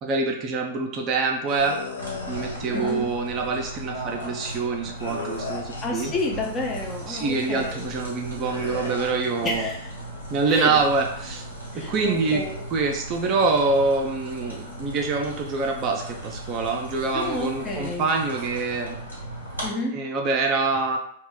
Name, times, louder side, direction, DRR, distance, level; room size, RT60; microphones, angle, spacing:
voice 1, 0.0-1.8 2.3-6.1 7.1-9.7 10.3-11.5 11.7-12.4 12.7-19.0 19.9-21.0, right 4 dB, 30° right, 1 dB, 0.4 m, -25 dB
sound 1, 1.5-2.6 5.0-6.0 8.4-9.1, left 4 dB, 70° left, 0.5 m, -35 dB
sound 2, 2.0-19.7, right 1 dB, 90° left, 1.0 m, -37 dB
voice 2, 2.7-3.1 5.8-7.9 9.4-9.9 10.5-10.8 11.7-12.6 17.1-18.1 19.6-20.0, left 2 dB, 20° left, 0 dB, 0.5 m, -30 dB
2.2 x 2.0 x 3.7 m, 0.68 s
figure-of-eight pair, 100°, 0 cm